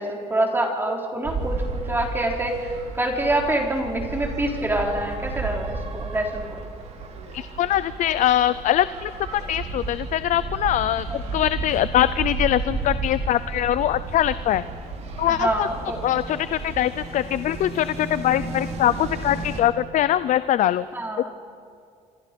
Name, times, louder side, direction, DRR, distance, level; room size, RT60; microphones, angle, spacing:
voice 1, 0.0-1.6 1.9-2.5 2.9-6.6 15.3-16.1 20.9-21.3, right 1 dB, 15° right, 1 dB, 3.9 m, -25 dB
sound 1, 1.2-19.6, right 3 dB, 50° right, 3.5 m, -33 dB
voice 2, 7.3-14.6 15.2-15.7 16.0-20.9, left 12 dB, 60° left, 15 dB, 0.6 m, -22 dB
28.0 x 25.5 x 5.3 m, 2.3 s
cardioid pair, 110°, 15 cm